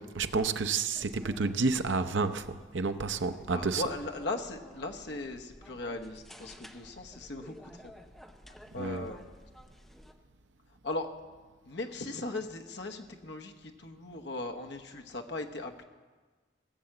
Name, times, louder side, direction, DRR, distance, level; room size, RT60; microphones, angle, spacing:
voice 1, 0.1-3.8 8.8-9.1, right 4 dB, 75° right, 0.7 m, -30 dB
sound 1, 0.9-10.1, equal, ahead, 0.6 m, -53 dB
voice 2, 3.4-7.9 8.5-9.3 10.8-11.1 11.6-15.8, left 2 dB, 60° left, 1.1 m, -38 dB
17.5 x 7.1 x 7.7 m
head